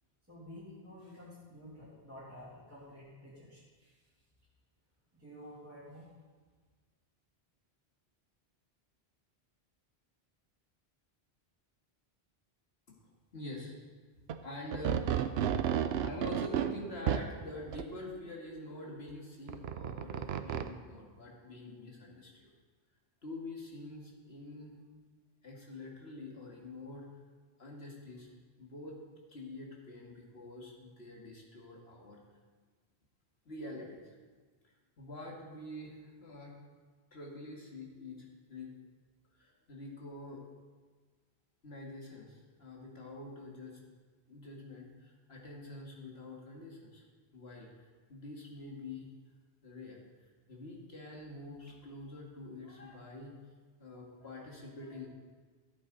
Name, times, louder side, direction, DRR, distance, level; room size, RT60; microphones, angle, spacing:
voice 1, 0.3-4.0 5.1-6.1, left 1 dB, 15° right, -11 dB, 2.6 m, -51 dB
voice 2, 13.3-13.8 14.4-15.6 16.0-22.5 23.2-24.8 25.4-27.1 27.6-28.3 28.6-29.0 29.3-32.2 33.5-34.2 34.6-36.6 37.1-38.7 39.3-40.4 41.6-43.8 44.3-47.0 47.3-49.1 49.6-53.3 53.8-55.1, left 2 dB, 70° left, -2 dB, 2.2 m, -46 dB
sound 1, 14.3-14.4 14.7-17.3 17.7-17.8 19.5-20.7, right 9 dB, 75° right, 0.8 m, -32 dB
13.5 x 8.5 x 4.0 m, 1.4 s
omnidirectional pair, 1.1 m